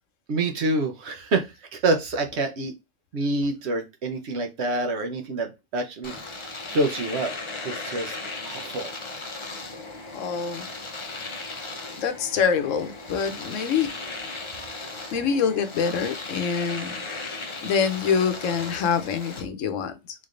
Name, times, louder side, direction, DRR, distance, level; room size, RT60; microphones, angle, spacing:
voice 1, 0.3-2.7 3.1-6.5 6.7-7.3 7.6-8.1 8.4-8.9, right 2 dB, 60° right, 1.0 m, -27 dB
Domestic sounds home sounds, 6.0-19.4, left 3 dB, 30° left, 0.6 m, -36 dB
voice 2, 10.1-10.7 11.1-11.2 12.0-13.9 15.1-20.0, left 6 dB, 80° left, 1.0 m, -26 dB
3.6 x 3.3 x 2.5 m
omnidirectional pair, 1.3 m